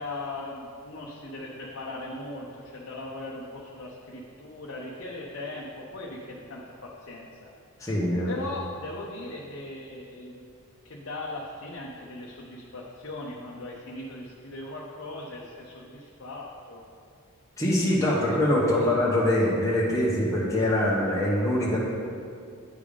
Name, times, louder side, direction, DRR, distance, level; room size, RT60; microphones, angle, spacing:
voice 1, 0.0-7.5 8.3-10.5 10.8-16.8 17.9-18.3 18.7-19.0, left 2 dB, 55° left, -3 dB, 0.7 m, -39 dB
voice 2, 7.8-8.3 17.6-21.8, left 1 dB, 15° left, -6 dB, 0.9 m, -24 dB
9.8 x 3.5 x 5.0 m, 2.4 s
head